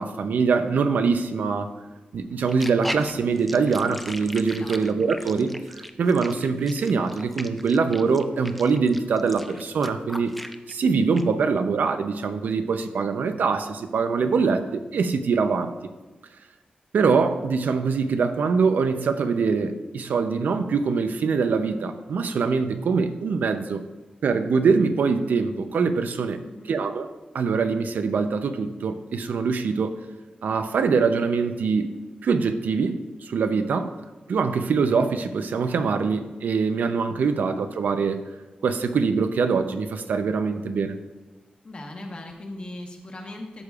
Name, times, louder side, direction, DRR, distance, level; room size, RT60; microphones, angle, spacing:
voice 1, 0.0-1.7 2.1-10.3 10.7-15.7 16.9-23.8 24.2-26.4 26.7-27.1 27.3-29.9 30.4-31.9 32.2-33.9 34.3-38.2 38.6-41.0, right 5 dB, 80° right, 8 dB, 0.5 m, -23 dB
sound 1, 2.4-10.7 11.2-11.3, equal, 5° left, 0.4 m, -38 dB
voice 2, 26.4-26.8 37.2-37.4 41.6-43.6, left 1 dB, 35° left, 2 dB, 1.1 m, -39 dB
12.5 x 6.6 x 2.4 m, 1.2 s
wide cardioid pair, 175°, 3 cm